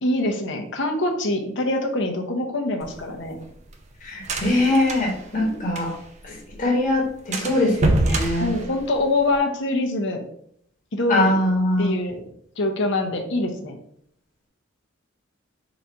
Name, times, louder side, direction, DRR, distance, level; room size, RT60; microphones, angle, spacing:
voice 1, 0.0-3.4 8.4-10.2 10.9-11.4 11.8-12.2 12.6-13.8, left 2 dB, 60° left, 4 dB, 0.8 m, -24 dB
sound 1, 2.8-6.2 6.5-6.6 6.9-7.0 7.3-9.4, right 2 dB, 35° right, 0.5 m, -26 dB
voice 2, 4.0-5.9 6.2-8.5 11.1-12.0, left 1 dB, 40° left, -1 dB, 1.2 m, -22 dB
3.9 x 2.6 x 4.5 m, 0.68 s
head